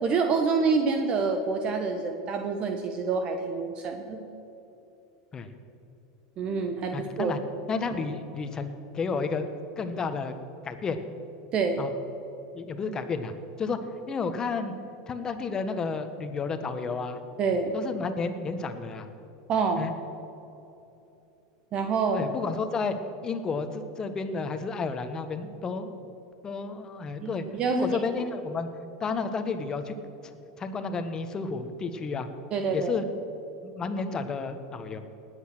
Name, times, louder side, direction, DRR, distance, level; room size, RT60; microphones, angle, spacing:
voice 1, 0.0-4.2 6.4-7.3 11.5-11.8 17.4-17.7 19.5-19.8 21.7-22.2 27.2-27.9 32.5-32.9, right 4 dB, 40° right, 5 dB, 1.3 m, -27 dB
voice 2, 6.9-7.4 7.7-9.5 9.8-10.3 10.6-11.0 11.8-11.9 12.5-13.8 14.1-14.7 15.1-17.2 17.7-19.1 19.8-19.9 22.1-23.0 23.2-25.9 26.4-28.7 29.0-29.9 30.6-32.3 32.6-33.0 33.6-35.0, left 4 dB, 25° left, 8 dB, 1.4 m, -31 dB
19.5 x 8.3 x 6.2 m, 3.0 s
hypercardioid pair, 105°, 3 cm